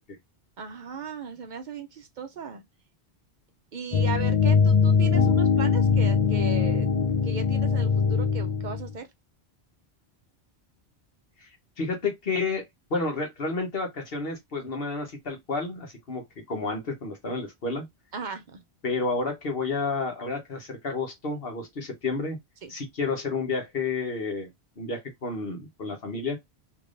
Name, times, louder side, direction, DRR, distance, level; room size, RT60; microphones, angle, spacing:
voice 1, 0.6-2.6 3.7-6.9 7.2-9.1 18.1-18.6 22.6-22.7, right 5 dB, 55° right, 0.7 m, -37 dB
sound 1, 3.9-8.9, left 5 dB, 50° left, 0.5 m, -22 dB
voice 2, 11.8-17.9 18.8-22.4 22.7-24.5 24.8-26.4, left 3 dB, 65° left, 1.2 m, -30 dB
3.3 x 2.9 x 2.5 m
omnidirectional pair, 1.1 m